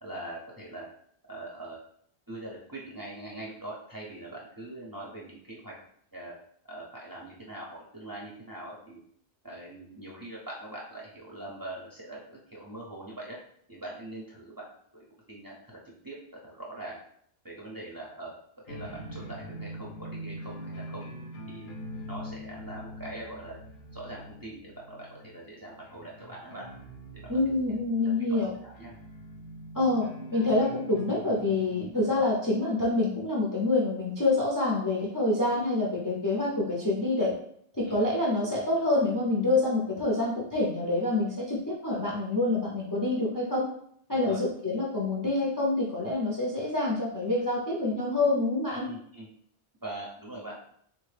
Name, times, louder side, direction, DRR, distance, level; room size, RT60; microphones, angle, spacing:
voice 1, 0.0-0.9 1.3-1.8 2.3-5.7 6.1-6.4 6.7-9.0 9.4-13.4 13.7-14.7 14.9-15.8 16.0-16.2 16.4-17.0 17.4-18.3 18.6-21.1 21.5-21.7 22.1-23.6 23.9-26.7 27.1-27.6 28.0-28.9 37.9-38.0 44.1-44.4 48.8-49.3 49.8-50.7, right 1 dB, 25° right, -4 dB, 0.6 m, -42 dB
sound 1, 18.7-32.2, equal, 55° left, 0.7 m, -43 dB
voice 2, 27.3-28.5 29.7-37.3 37.7-43.7 44.1-48.9, left 2 dB, 25° left, -4 dB, 0.5 m, -27 dB
3.4 x 2.2 x 3.3 m, 0.65 s
omnidirectional pair, 1.1 m